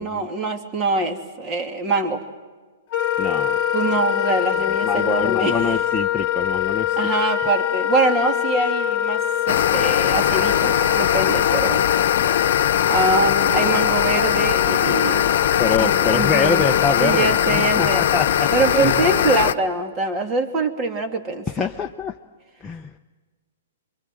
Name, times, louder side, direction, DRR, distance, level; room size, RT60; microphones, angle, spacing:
voice 1, 0.0-2.2 3.7-5.6 7.0-11.8 12.9-15.4 15.8-16.6 17.0-18.1 18.5-21.7, right 3 dB, 25° right, 5 dB, 2.6 m, -24 dB
Wind instrument woodwind instrument, 2.9-19.5, left 10 dB, 40° left, 1.3 m, -24 dB
voice 2, 3.2-3.6 4.8-7.0 15.6-18.9 21.5-22.1 22.6-22.9, left 4 dB, 10° left, 1 dB, 0.8 m, -25 dB
sound 1, 9.5-19.5, left 9 dB, 65° left, 0.9 m, -21 dB
26.0 x 23.5 x 7.7 m, 1.4 s
hypercardioid pair, 135°, 0 cm